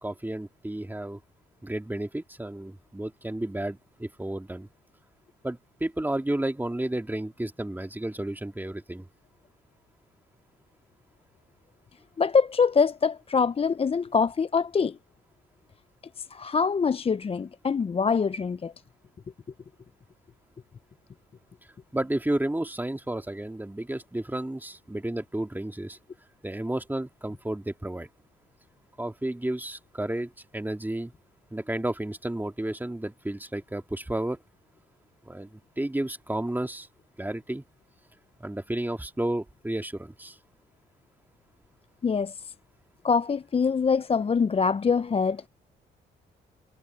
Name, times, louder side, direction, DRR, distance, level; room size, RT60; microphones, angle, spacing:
voice 1, 0.0-1.2 1.6-4.7 5.4-9.1 21.9-26.0 26.4-28.1 29.0-31.1 31.5-34.4 35.3-36.9 37.2-37.6 38.4-40.4, right 1 dB, 10° right, 2.5 m, -32 dB
voice 2, 12.2-15.0 16.2-18.7 42.0-42.5 43.0-45.4, left 5 dB, 30° left, 0.6 m, -24 dB
supercardioid pair, 65°, 19 cm